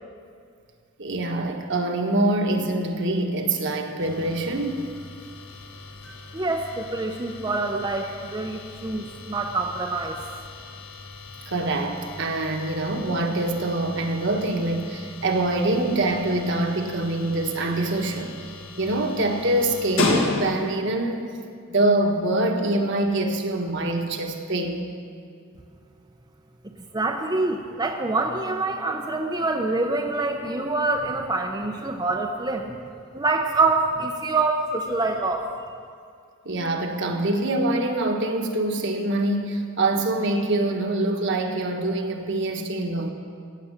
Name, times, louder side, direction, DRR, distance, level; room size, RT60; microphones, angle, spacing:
voice 1, 1.0-4.9 11.5-18.4 18.8-21.4 21.7-24.9 36.4-43.1, right 2 dB, 60° right, 3 dB, 1.3 m, -25 dB
sound 1, 4.0-20.9, left 2 dB, 70° left, 1.7 m, -35 dB
voice 2, 6.3-10.2 26.9-32.7 33.1-35.5, right 3 dB, 20° right, 2 dB, 0.6 m, -25 dB
15.5 x 7.8 x 7.2 m, 2.3 s
head